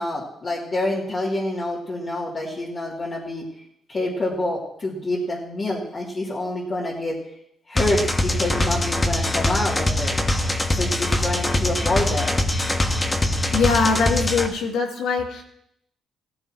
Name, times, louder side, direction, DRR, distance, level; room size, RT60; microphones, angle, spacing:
voice 1, 0.0-3.4 3.9-7.2 7.7-10.2 10.7-12.3, left 1 dB, 40° left, -6 dB, 2.9 m, -27 dB
sound 1, 7.8-14.5, left 1 dB, 20° left, 1.5 m, -23 dB
voice 2, 13.5-15.4, left 4 dB, 85° left, 1 dB, 2.6 m, -22 dB
16.5 x 14.5 x 3.1 m, 0.75 s
cardioid pair, 90°, 0 cm